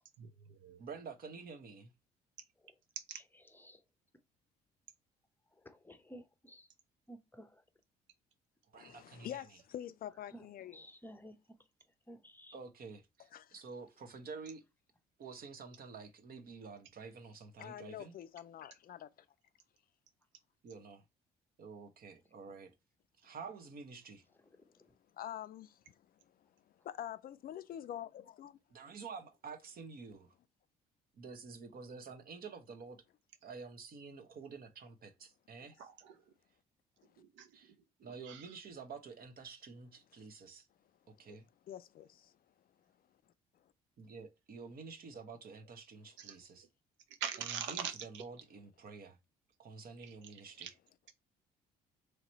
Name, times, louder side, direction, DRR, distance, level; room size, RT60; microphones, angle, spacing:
voice 1, 0.2-0.9 3.0-3.2 35.8-36.3 37.2-37.6 38.0-38.6 46.2-46.4 47.1-48.3 50.0-50.7, right 8 dB, 75° right, 0.6 m, -44 dB
voice 2, 0.8-1.9 8.7-9.4 12.5-14.6 15.2-18.1 20.6-21.0 21.6-22.7 23.2-24.2 28.7-30.3 31.2-33.0 33.4-35.8 37.5-37.7 38.0-40.7 41.2-41.5 44.0-46.6 47.7-49.2 49.6-50.7, right 5 dB, 50° right, 0.9 m, -49 dB
voice 3, 3.5-3.8 5.5-6.7 7.1-7.6 10.3-10.5 10.7-11.4 12.1-12.6 24.8-24.9, equal, 10° left, 0.7 m, -54 dB
voice 4, 8.7-10.8 13.3-13.6 17.6-19.1 25.2-26.1 26.8-28.6 41.3-41.4 41.7-42.3, left 11 dB, 50° left, 0.4 m, -46 dB
3.3 x 2.9 x 3.9 m
hypercardioid pair, 60°, 20 cm